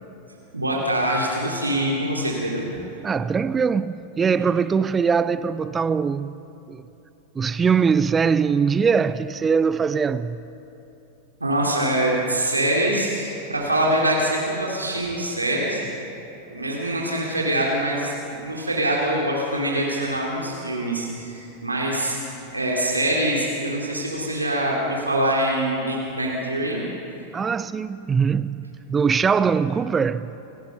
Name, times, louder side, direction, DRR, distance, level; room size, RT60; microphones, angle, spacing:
voice 1, 0.5-2.7 11.4-15.8 16.5-26.8, right 1 dB, 80° right, 3.3 m, -24 dB
voice 2, 3.0-6.4 6.7-6.8 7.3-10.5 27.3-30.3, right 6 dB, 20° right, 0.4 m, -22 dB
29.0 x 18.0 x 5.7 m
figure-of-eight pair, 90°, 0 cm